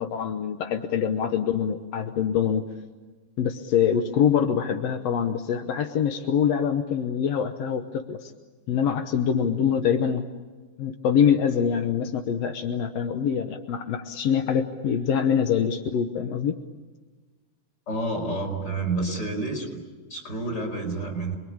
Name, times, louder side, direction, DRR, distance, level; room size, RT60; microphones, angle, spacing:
voice 1, 0.0-2.6 3.4-8.3 8.7-10.3 10.8-16.6, left 8 dB, 70° left, 7 dB, 1.6 m, -24 dB
voice 2, 17.9-19.8 20.1-21.3, right 2 dB, 25° left, 2 dB, 5.4 m, -29 dB
27.5 x 22.0 x 8.7 m, 1.4 s
omnidirectional pair, 4.2 m